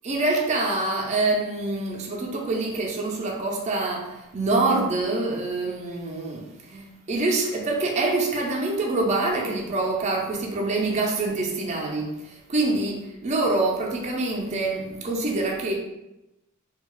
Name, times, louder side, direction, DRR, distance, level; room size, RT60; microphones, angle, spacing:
voice 1, 0.1-15.7, right 2 dB, 30° right, -1 dB, 0.4 m, -26 dB
2.8 x 2.2 x 3.0 m, 0.94 s
head